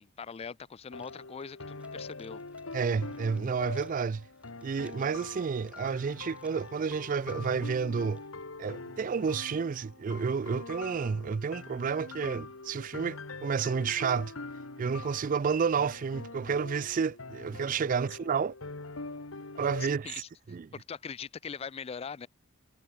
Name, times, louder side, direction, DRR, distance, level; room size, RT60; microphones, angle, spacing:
voice 1, 0.0-2.4 19.8-20.3 20.7-22.3, left 6 dB, 30° left, 0.4 m, -41 dB
sound 1, 0.9-19.9, left 3 dB, 85° left, 1.9 m, -44 dB
sound 2, 1.0-8.5, right 1 dB, 5° right, 5.2 m, -65 dB
voice 2, 2.7-4.2 4.6-8.2 8.6-14.3 14.8-18.5 19.6-20.7, right 6 dB, 40° right, 0.4 m, -30 dB
head